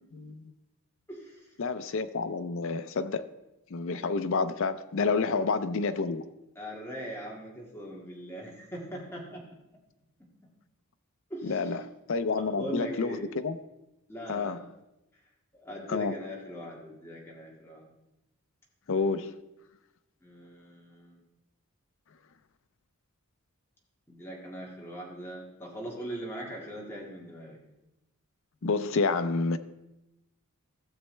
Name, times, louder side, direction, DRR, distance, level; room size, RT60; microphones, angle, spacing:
voice 1, 0.1-0.4 1.6-3.2 3.7-6.2 11.4-11.8 12.1-13.6 14.3-14.7 15.9-16.2 18.9-19.4 28.6-29.6, left 4 dB, 65° left, 0.5 m, -29 dB
voice 2, 1.1-1.5 5.1-5.4 6.6-9.4 11.3-11.7 12.6-13.2 14.1-14.6 15.5-17.9 20.2-21.2 24.1-27.6, equal, 10° left, 2.0 m, -40 dB
14.0 x 7.2 x 3.3 m
head